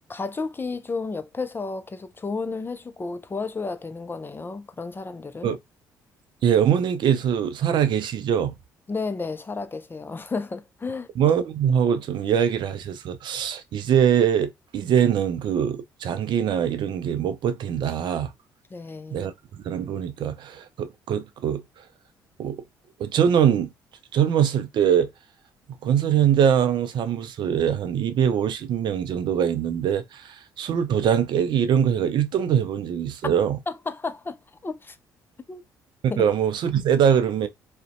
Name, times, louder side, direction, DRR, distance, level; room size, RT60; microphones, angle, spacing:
voice 1, 0.1-5.5 8.9-11.1 18.7-19.3 33.2-33.3 33.7-35.0 35.5-35.6 36.1-36.2, left 4 dB, 25° left, 0.4 m, -32 dB
voice 2, 6.4-8.5 11.2-18.3 19.1-19.3 19.6-21.6 22.4-22.6 23.0-23.7 24.1-25.1 25.8-33.6 36.2-37.5, right 8 dB, 55° right, 0.4 m, -22 dB
2.5 x 2.1 x 2.5 m
hypercardioid pair, 50°, 9 cm